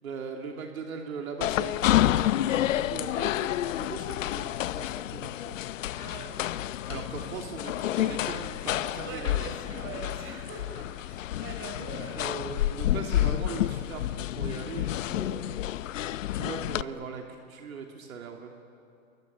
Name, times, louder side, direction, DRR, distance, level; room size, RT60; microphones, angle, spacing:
voice 1, 0.0-5.6 6.9-9.5 12.2-18.5, right 5 dB, 80° right, 2 dB, 3.0 m, -40 dB
sound 1, 1.4-16.8, left 13 dB, 65° left, 0.8 m, -29 dB
voice 2, 5.9-7.5 9.0-12.3, right 4 dB, 30° right, 3 dB, 6.8 m, -43 dB
28.0 x 23.0 x 8.2 m, 2.4 s
hypercardioid pair, 135°, 41 cm